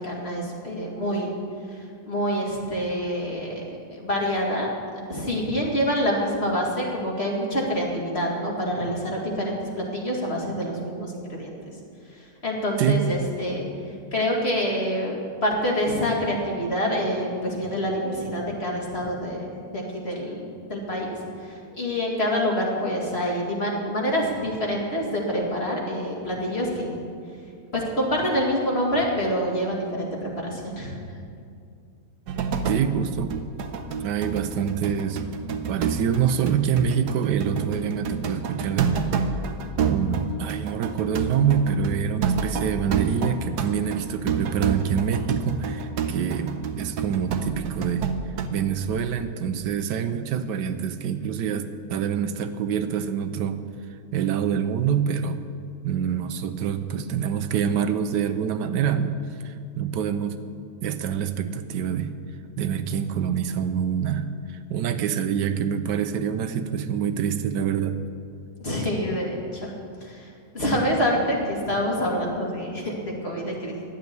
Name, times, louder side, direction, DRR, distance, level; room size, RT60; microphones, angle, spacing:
voice 1, 0.0-1.3 2.1-9.6 9.9-11.5 12.4-13.6 14.1-27.0 27.7-31.0 68.6-69.7 70.0-70.3 70.5-73.7, equal, 35° left, -2 dB, 2.5 m, -26 dB
voice 2, 12.8-13.1 32.6-33.3 34.0-35.2 35.7-39.2 39.8-48.1 48.5-53.6 54.1-55.4 55.8-60.4 60.8-62.1 62.6-68.0, right 8 dB, 85° right, 10 dB, 1.3 m, -26 dB
sound 1, 32.3-32.9 33.3-48.5, right 5 dB, 70° right, 1.3 m, -28 dB
12.0 x 7.8 x 9.5 m, 2.4 s
omnidirectional pair, 1.8 m